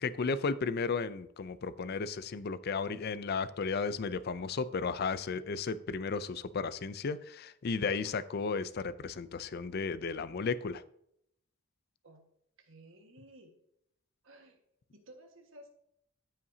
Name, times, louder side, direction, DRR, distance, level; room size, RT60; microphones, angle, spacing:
voice 1, 0.0-10.8, left 4 dB, 50° left, 15 dB, 0.4 m, -34 dB
voice 2, 12.6-13.5 14.2-14.6 14.9-15.7, right 1 dB, 65° right, 4 dB, 1.6 m, -55 dB
14.0 x 5.7 x 2.7 m, 0.74 s
head